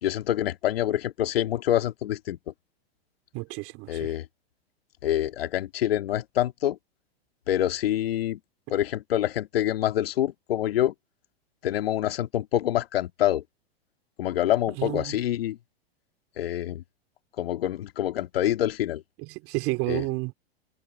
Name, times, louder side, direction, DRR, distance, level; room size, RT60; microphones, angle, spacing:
voice 1, 0.0-2.5 3.9-4.3 5.0-6.8 7.5-8.4 8.7-10.9 11.6-13.4 14.2-15.6 16.4-16.8 17.4-19.0 19.9-20.0, left 12 dB, 70° left, 2.0 m, -26 dB
voice 2, 3.3-4.1 14.8-15.2 19.2-20.3, right 26 dB, 45° right, 4.3 m, -31 dB
hypercardioid pair, 105°, 31 cm